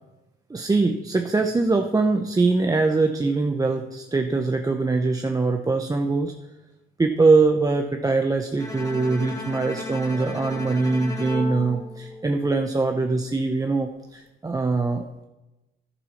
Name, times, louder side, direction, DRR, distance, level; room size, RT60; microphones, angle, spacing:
voice 1, 0.5-6.3 7.0-15.3, right 3 dB, 20° right, 4 dB, 0.7 m, -22 dB
Bowed string instrument, 8.6-12.7, left 1 dB, 20° left, 2.3 m, -35 dB
11.0 x 7.0 x 5.8 m, 1.0 s
cardioid pair, 90°, 20 cm